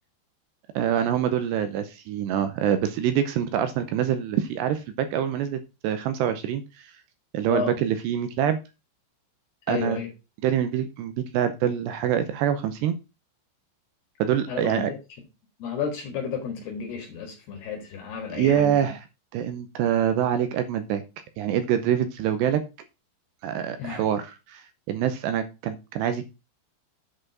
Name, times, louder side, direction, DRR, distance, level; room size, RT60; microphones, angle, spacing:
voice 1, 0.8-7.0 7.3-8.6 9.7-10.0 10.4-13.0 14.2-14.9 18.3-19.0 19.3-21.0 21.4-22.6 23.4-26.2, right 9 dB, 80° right, 10 dB, 2.5 m, -25 dB
voice 2, 7.5-7.8 9.7-10.1 14.5-15.0 15.6-18.9 23.8-24.1, left 6 dB, 60° left, 2 dB, 3.4 m, -32 dB
8.5 x 5.1 x 6.0 m, 0.28 s
omnidirectional pair, 5.6 m